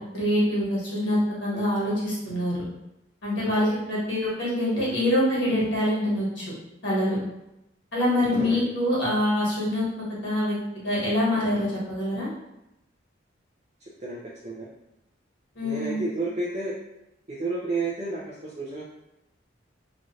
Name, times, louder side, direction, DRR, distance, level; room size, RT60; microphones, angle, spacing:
voice 1, 0.1-2.6 3.2-6.4 6.8-7.2 7.9-9.9 10.2-10.5 10.8-12.3 15.5-16.1, left 1 dB, 75° left, -7 dB, 1.3 m, -25 dB
voice 2, 8.4-8.7 14.0-14.2 14.4-14.7 15.6-16.7 17.3-18.8, right 3 dB, 35° right, -7 dB, 0.5 m, -31 dB
3.1 x 2.4 x 2.7 m, 0.89 s
head